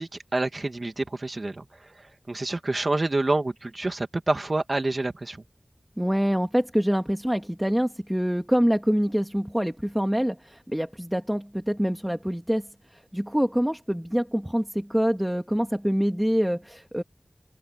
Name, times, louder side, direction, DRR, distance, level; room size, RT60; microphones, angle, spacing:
voice 1, 0.0-1.6 2.0-5.4, right 2 dB, 50° right, 2.1 m, -28 dB
voice 2, 6.0-17.0, equal, 5° right, 2.7 m, -25 dB
wide cardioid pair, 75°, 0 cm